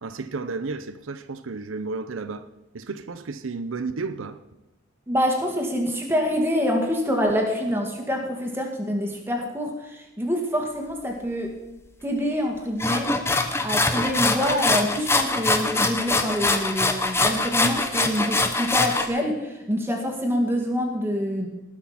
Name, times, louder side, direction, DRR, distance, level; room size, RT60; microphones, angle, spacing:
voice 1, 0.0-2.5 2.7-4.4, right 4 dB, 75° right, 0.6 m, -32 dB
voice 2, 5.1-11.5 12.0-13.1 13.6-21.5, equal, 10° right, 2.0 m, -26 dB
sound 1, 12.8-19.1, left 2 dB, 10° left, 0.8 m, -23 dB
19.0 x 6.3 x 5.8 m
head